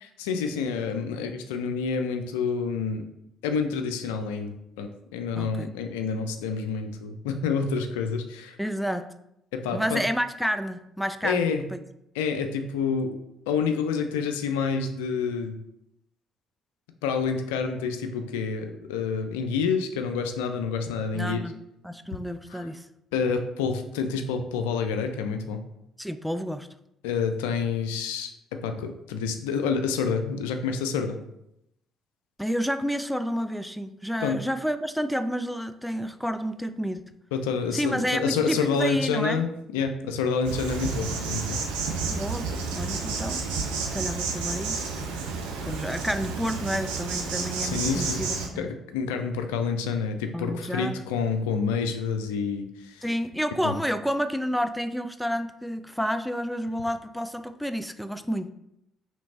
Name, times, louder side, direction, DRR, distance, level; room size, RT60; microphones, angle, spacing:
voice 1, 0.2-3.1 3.4-8.6 9.5-10.0 11.2-11.7 12.1-13.2 13.5-15.6 17.0-21.4 22.5-22.7 23.1-25.6 27.0-31.2 34.2-34.4 37.3-41.6 47.6-48.2 48.6-53.0 53.6-53.7, left 5 dB, 85° left, 7 dB, 0.4 m, -28 dB
voice 2, 5.3-5.7 8.6-9.1 9.7-11.8 21.1-21.5 21.8-22.9 26.0-26.7 32.4-37.0 37.7-39.4 42.1-43.5 43.8-45.0 45.6-48.7 50.3-51.0 53.0-58.5, equal, ahead, 10 dB, 0.3 m, -30 dB
Insect, 40.4-48.5, right 4 dB, 80° right, 0.6 m, -31 dB
3.2 x 3.1 x 4.1 m, 0.81 s
hypercardioid pair, 55°, 0 cm